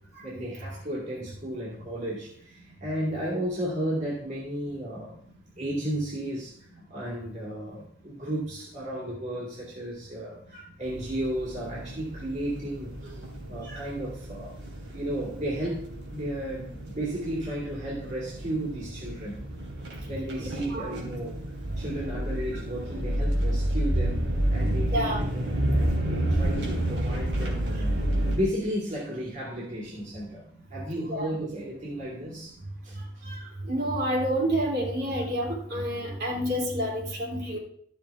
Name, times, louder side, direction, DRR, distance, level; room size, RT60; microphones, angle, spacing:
voice 1, 0.2-5.2 5.6-14.5 14.9-19.4 20.1-21.4 21.8-28.0 28.3-30.4 30.7-32.6 32.8-33.2 36.0-36.2, right 1 dB, 40° right, -5 dB, 2.5 m, -34 dB
sound 1, 10.8-28.4, right 1 dB, 80° right, 3.0 m, -30 dB
voice 2, 20.4-20.9 24.9-25.2 31.1-31.3 33.2-37.6, equal, 60° right, -3 dB, 3.1 m, -29 dB
13.0 x 6.8 x 3.5 m, 0.63 s
head